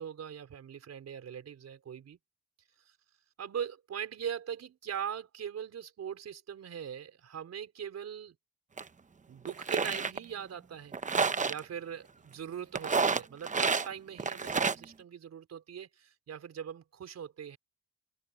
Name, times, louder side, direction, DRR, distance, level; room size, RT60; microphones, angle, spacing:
voice 1, 0.0-2.2 3.4-8.4 9.3-10.9 11.4-17.6, right 8 dB, 60° right, 5.0 m, -41 dB
sound 1, 8.8-8.9 9.5-10.2 10.9-11.6 12.8-13.9 14.2-14.8, right 4 dB, 25° right, 1.0 m, -29 dB
open air
cardioid pair, 90°, 30 cm